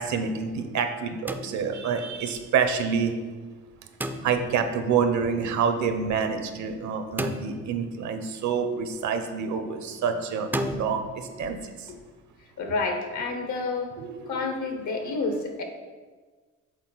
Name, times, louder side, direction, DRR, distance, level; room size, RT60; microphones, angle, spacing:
voice 1, 0.0-3.2 4.2-11.9 14.0-14.4, right 6 dB, 70° right, 7 dB, 0.7 m, -27 dB
sound 1, 1.3-2.0 4.0-4.7 7.2-8.1 10.5-10.9, right 1 dB, 5° right, 0.3 m, -32 dB
voice 2, 12.6-13.9 14.3-15.6, left 3 dB, 75° left, 4 dB, 1.0 m, -29 dB
6.3 x 4.0 x 3.9 m, 1.4 s
cardioid pair, 90°, 30 cm